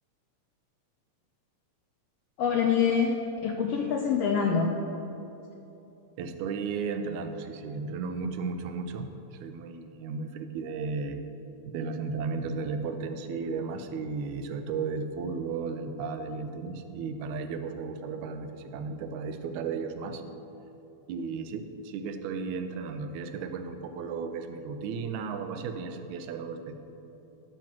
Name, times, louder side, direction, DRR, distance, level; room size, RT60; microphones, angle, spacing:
voice 1, 2.4-3.1 3.4-4.7, left 6 dB, 85° left, 2 dB, 1.4 m, -25 dB
voice 2, 6.2-11.2 11.7-20.2 21.1-26.8, right 5 dB, 85° right, 7 dB, 2.1 m, -34 dB
11.5 x 6.0 x 4.5 m, 3.0 s
omnidirectional pair, 3.3 m